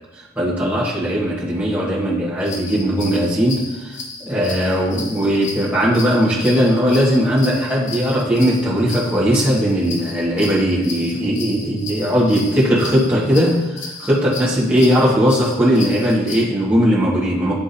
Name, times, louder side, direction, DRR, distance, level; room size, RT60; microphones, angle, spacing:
voice 1, 0.3-17.6, equal, 10° right, -8 dB, 1.5 m, -18 dB
sound 1, 2.4-16.4, left 3 dB, 75° left, 0.9 m, -34 dB
9.8 x 3.6 x 2.7 m, 1.1 s
head